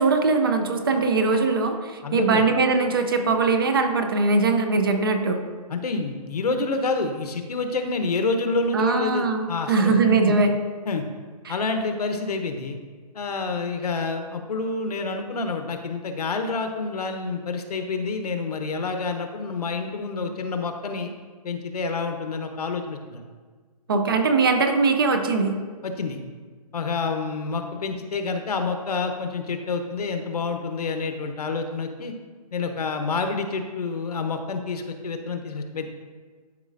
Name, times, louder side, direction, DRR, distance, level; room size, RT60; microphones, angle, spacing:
voice 1, 0.0-5.4 8.7-10.5 11.5-11.6 23.9-25.5, right 4 dB, 35° right, 6 dB, 0.6 m, -21 dB
voice 2, 2.0-2.4 5.7-10.3 10.8-11.0 11.5-12.8 13.1-21.1 21.4-23.2 25.8-26.2 26.7-32.1 32.5-35.9, left 4 dB, 75° left, 6 dB, 1.0 m, -28 dB
12.0 x 5.0 x 2.6 m, 1.5 s
hypercardioid pair, 170°, 20 cm